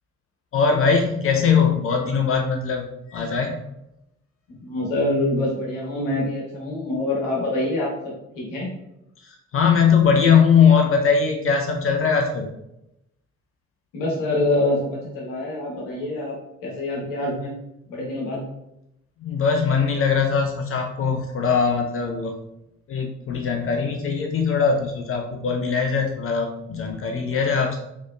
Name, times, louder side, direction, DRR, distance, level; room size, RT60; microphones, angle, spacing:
voice 1, 0.5-3.6 9.2-12.5 19.2-22.3 22.9-27.8, left 6 dB, 35° left, 2 dB, 0.6 m, -21 dB
voice 2, 4.6-7.9 8.3-8.7 13.9-16.4 16.6-17.5 17.9-18.4, left 2 dB, 60° left, -3 dB, 1.2 m, -25 dB
4.0 x 3.0 x 2.3 m, 0.83 s
figure-of-eight pair, 40°, 37 cm